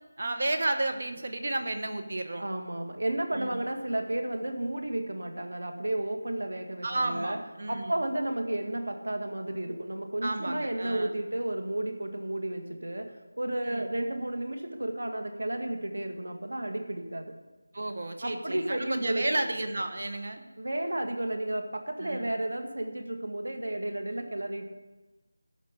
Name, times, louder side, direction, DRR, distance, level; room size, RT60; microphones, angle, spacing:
voice 1, 0.2-2.5 3.3-3.6 6.8-7.9 10.2-11.1 13.6-13.9 17.7-20.4 22.0-22.3, right 2 dB, 45° right, 6 dB, 1.2 m, -32 dB
voice 2, 2.4-7.4 7.7-17.4 18.2-19.5 20.6-24.7, right 1 dB, 80° right, 5 dB, 2.0 m, -32 dB
14.0 x 5.2 x 9.0 m, 1.2 s
figure-of-eight pair, 175°, 0 cm